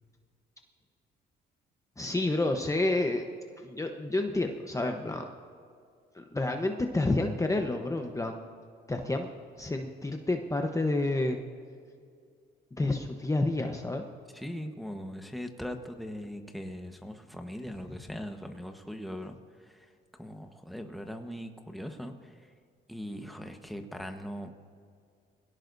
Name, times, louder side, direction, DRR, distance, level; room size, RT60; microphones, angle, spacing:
voice 1, 2.0-3.2 3.6-5.3 6.1-8.4 8.9-9.3 9.6-11.4 12.7-14.0 17.9-18.0, left 2 dB, 15° left, 4 dB, 1.0 m, -29 dB
voice 2, 14.3-22.5 22.9-24.5, equal, ahead, 5 dB, 1.2 m, -40 dB
23.0 x 17.0 x 2.7 m, 2.3 s
cardioid pair, 90°, 20 cm